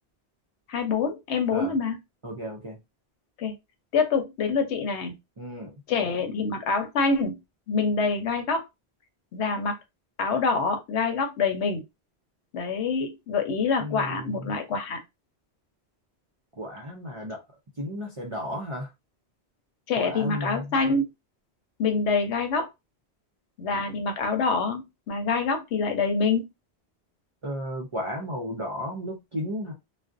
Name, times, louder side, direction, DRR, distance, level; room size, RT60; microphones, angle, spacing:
voice 1, 0.7-2.0 3.4-3.5 3.9-5.1 5.9-7.4 7.7-8.6 9.3-9.8 10.2-11.8 12.5-15.0 19.9-21.1 21.8-22.7 23.6-26.5, left 4 dB, 85° left, 0.9 m, -26 dB
voice 2, 2.2-2.8 5.4-5.7 13.8-14.4 16.6-17.4 17.8-18.9 20.0-20.6 27.4-29.7, equal, 40° right, 0.4 m, -33 dB
2.5 x 2.0 x 2.4 m
omnidirectional pair, 1.1 m